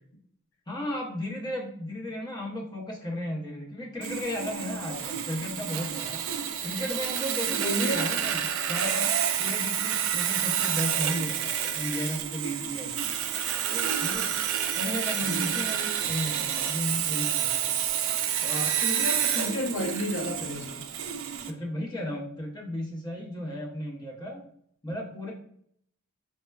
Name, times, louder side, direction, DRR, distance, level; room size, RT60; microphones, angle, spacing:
voice 1, 0.7-6.3 6.6-9.1 9.4-13.0 13.7-14.3 14.8-17.6 18.4-18.7 21.5-24.4 24.8-25.3, left 1 dB, 20° left, -3 dB, 0.6 m, -34 dB
Sawing, 4.0-21.5, right 9 dB, 75° right, 0.3 m, -29 dB
voice 2, 7.6-8.1 15.2-15.4 18.5-20.9, left 1 dB, 70° left, 1 dB, 0.6 m, -32 dB
4.2 x 2.1 x 2.2 m, 0.66 s
head